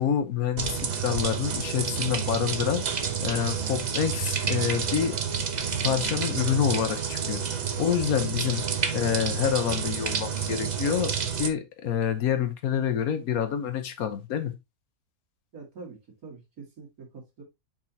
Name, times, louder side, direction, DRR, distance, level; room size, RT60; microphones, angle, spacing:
voice 1, 0.0-2.8 3.2-5.2 5.8-7.4 7.8-8.6 8.9-14.5, left 9 dB, 80° left, 1.4 m, -27 dB
sound 1, 0.6-11.5, right 6 dB, 40° right, 0.7 m, -29 dB
voice 2, 15.5-17.4, right 4 dB, 80° right, 2.5 m, -45 dB
7.3 x 5.1 x 2.8 m
omnidirectional pair, 1.5 m